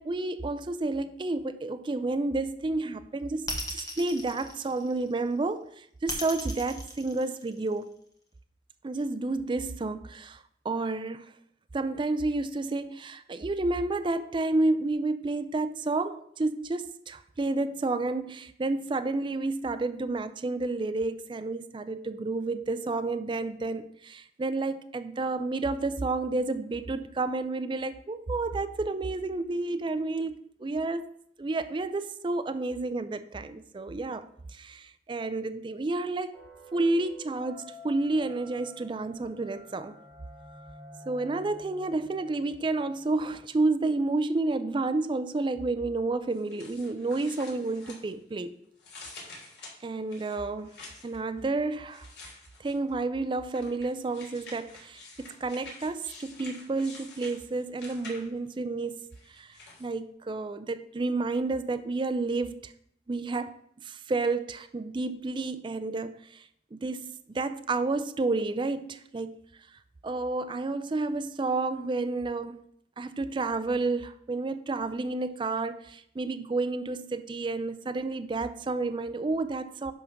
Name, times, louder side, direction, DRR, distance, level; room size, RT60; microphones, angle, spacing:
voice 1, 0.0-8.0 8.8-11.3 11.7-31.1 31.4-36.4 36.7-39.9 41.1-48.6 49.8-50.7 51.0-52.1 52.6-62.7 63.1-63.5 63.8-69.4 69.7-72.6 73.0-79.9, right 3 dB, 25° right, 10 dB, 0.4 m, -30 dB
sound 1, 3.5-5.2 6.1-7.8, left 2 dB, 20° left, 1.4 m, -37 dB
sound 2, 36.3-43.7, equal, 5° left, 2.2 m, -50 dB
sound 3, 46.3-48.4 48.8-51.2 51.9-52.9 53.5-58.5 59.1-59.9, left 3 dB, 85° left, 3.4 m, -48 dB
10.5 x 3.6 x 5.8 m, 0.69 s
head